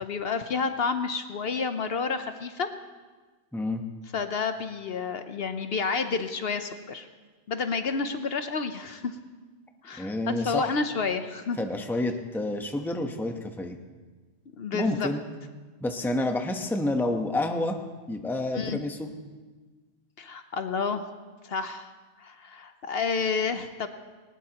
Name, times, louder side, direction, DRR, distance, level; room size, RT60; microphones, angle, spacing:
voice 1, 0.0-2.7 4.1-7.1 7.5-9.2 9.8-11.6 14.6-15.1 18.5-18.8 20.2-21.0 21.4-21.9 22.2-23.9, left 5 dB, 65° left, 8 dB, 1.0 m, -30 dB
voice 2, 3.5-3.8 10.0-10.7 11.6-13.8 14.7-15.2 15.8-17.8 18.1-19.1, left 2 dB, ahead, 4 dB, 0.8 m, -29 dB
19.5 x 19.5 x 2.9 m, 1.3 s
omnidirectional pair, 1.2 m